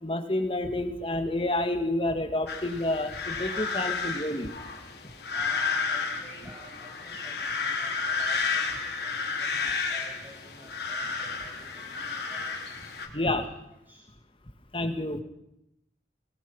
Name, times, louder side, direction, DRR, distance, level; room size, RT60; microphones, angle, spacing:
voice 1, 0.0-4.5 13.1-13.4 14.7-15.2, left 1 dB, 30° left, 7 dB, 2.0 m, -29 dB
sound 1, 2.5-13.1, left 4 dB, 65° left, 3.8 m, -32 dB
voice 2, 5.3-12.5 13.1-13.4 13.9-14.1, equal, 15° right, -7 dB, 7.8 m, -51 dB
25.0 x 19.5 x 5.6 m, 0.81 s
head